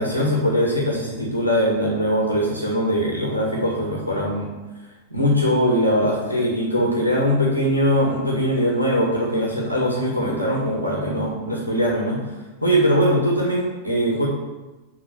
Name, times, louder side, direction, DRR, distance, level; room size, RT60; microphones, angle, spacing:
voice 1, 0.0-4.5 5.1-12.2 12.6-14.3, equal, 90° right, -2 dB, 1.9 m, -21 dB
11.0 x 3.8 x 6.8 m, 1.2 s
figure-of-eight pair, 90°, 0 cm